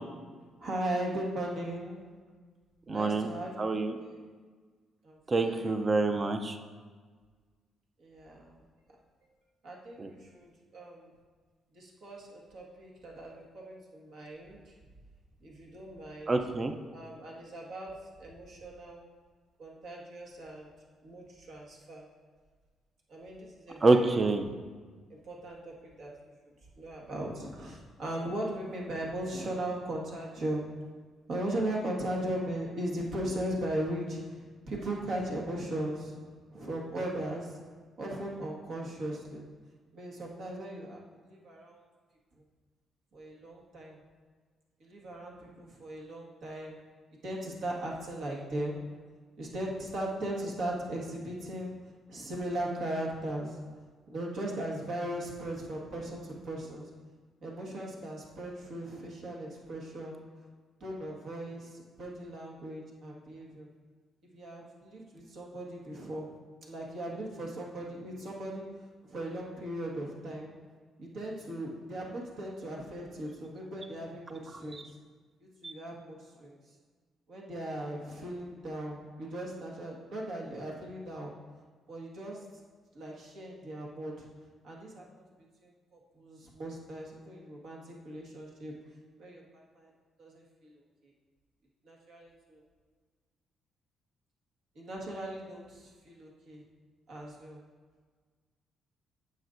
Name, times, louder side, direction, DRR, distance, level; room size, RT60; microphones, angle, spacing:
voice 1, 0.6-2.0 2.9-3.7 4.0-4.2 5.0-5.7 8.0-8.6 9.6-11.1 11.7-14.6 15.4-16.3 16.9-17.9 18.2-19.0 19.6-20.7 21.0-22.0 23.1-24.2 25.2-26.1 26.8-30.6 31.3-36.2 36.5-37.6 38.0-39.4 39.9-41.8 43.1-44.0 44.8-46.8 47.2-48.8 49.4-51.7 52.1-53.6 54.1-56.8 57.4-60.2 60.8-63.7 64.3-66.3 66.7-68.6 69.0-70.5 71.0-74.9 75.4-76.6 77.3-81.3 81.9-82.4 82.9-84.3 84.6-85.3 85.6-88.7 89.2-89.4 89.7-89.9 90.2-90.7 91.8-92.6 94.7-96.6 97.1-97.6, right 1 dB, 70° right, -2 dB, 1.6 m, -38 dB
voice 2, 2.9-3.3 3.6-3.9 5.3-6.6 10.0-10.1 16.3-16.7 23.8-24.5 74.7-74.8 75.6-75.7, right 3 dB, 35° right, 6 dB, 0.5 m, -26 dB
9.1 x 6.3 x 2.6 m, 1.5 s
cardioid pair, 90°, 0 cm